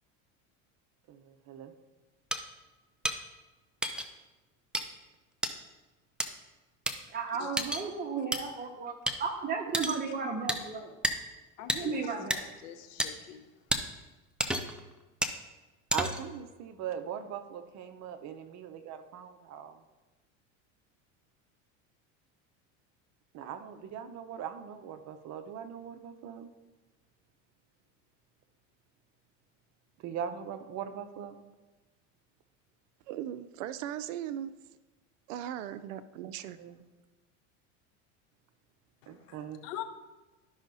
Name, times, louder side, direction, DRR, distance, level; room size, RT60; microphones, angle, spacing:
voice 1, 1.1-1.7 15.9-19.8 23.3-26.5 30.0-31.4 36.2-36.8 39.1-39.6, right 8 dB, 45° right, 0.8 m, -40 dB
sound 1, 2.3-2.4 3.0-3.2 3.8-4.1 4.7-4.8 5.4-5.5 6.2-6.3 6.9-7.0 7.6-7.8 8.3-8.4 9.1-9.2 9.7-10.0 10.5-10.6 11.0-11.2 11.7-11.8 12.3-12.4 13.0-13.1 13.7-13.8 14.4-14.8 15.2-15.4 15.9-16.3, right 1 dB, 5° right, 0.4 m, -30 dB
voice 2, 7.1-8.9 9.2-10.9 11.7-12.5, right 5 dB, 25° right, 1.3 m, -34 dB
voice 3, 11.6-12.0 12.3-13.4 39.6-39.8, left 11 dB, 80° left, 0.9 m, -42 dB
voice 4, 33.1-34.5 35.3-36.6, right 11 dB, 85° right, 0.5 m, -38 dB
12.5 x 5.6 x 2.7 m
supercardioid pair, 105°, 37 cm